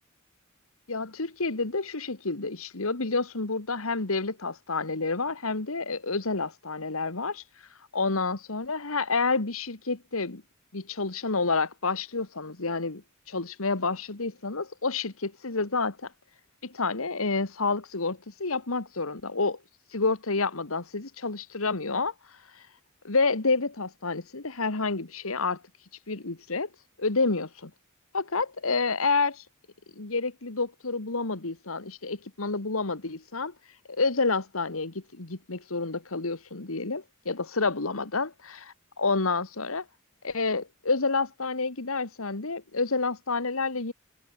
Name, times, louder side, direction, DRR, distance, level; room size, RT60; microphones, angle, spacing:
voice 1, 0.9-7.4 7.9-10.4 10.7-16.1 16.6-19.6 19.9-22.1 23.0-25.6 26.1-26.7 27.0-27.7 28.1-29.4 30.0-33.5 33.9-39.9 40.2-43.9, left 3 dB, 80° left, 1.8 m, -29 dB
head